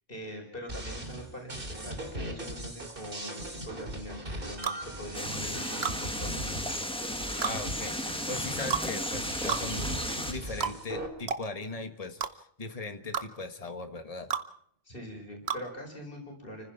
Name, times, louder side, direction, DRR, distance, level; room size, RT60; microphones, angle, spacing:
voice 1, 0.1-6.4 14.8-16.7, equal, 60° left, 1 dB, 4.9 m, -43 dB
sound 1, 0.7-11.1, right 1 dB, 60° right, 3.2 m, -39 dB
sound 2, 4.6-4.8 5.8-6.0 7.4-7.6 8.7-8.9 9.5-9.7 10.6-10.8 11.3-11.4 12.2-12.3 13.1-13.3 14.3-14.5 15.5-15.6, right 6 dB, 80° right, 1.3 m, -31 dB
sound 3, 5.1-10.3, equal, 5° left, 1.6 m, -35 dB
voice 2, 7.4-9.9 10.3-14.3, left 3 dB, 35° left, 7 dB, 1.7 m, -39 dB
29.5 x 15.5 x 5.9 m, 0.66 s
omnidirectional pair, 1.0 m